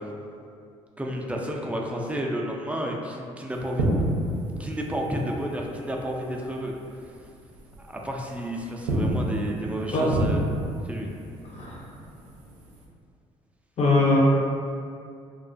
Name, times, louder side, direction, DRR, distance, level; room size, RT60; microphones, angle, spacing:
voice 1, 1.0-4.0 4.6-6.7 7.9-10.4 10.9-11.1, equal, 10° right, -1 dB, 0.4 m, -31 dB
sound 1, 3.5-6.5 6.8-7.0 7.5-8.3 8.7-12.8, right 1 dB, 85° right, 0.4 m, -29 dB
voice 2, 13.8-14.2, left 3 dB, 45° left, -4 dB, 0.6 m, -21 dB
2.4 x 2.2 x 2.4 m, 2.4 s
hypercardioid pair, 55°, 15 cm